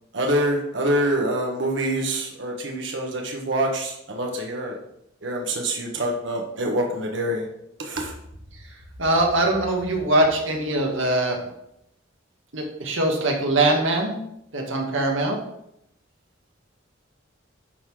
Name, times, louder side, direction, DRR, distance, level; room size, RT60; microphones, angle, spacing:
voice 1, 0.1-4.8 5.2-7.5 7.8-8.2, right 1 dB, 70° right, 1 dB, 1.2 m, -25 dB
voice 2, 9.0-11.4 12.5-14.2 14.5-15.4, right 1 dB, 85° right, 1 dB, 1.6 m, -22 dB
10.5 x 3.8 x 4.8 m, 0.81 s
head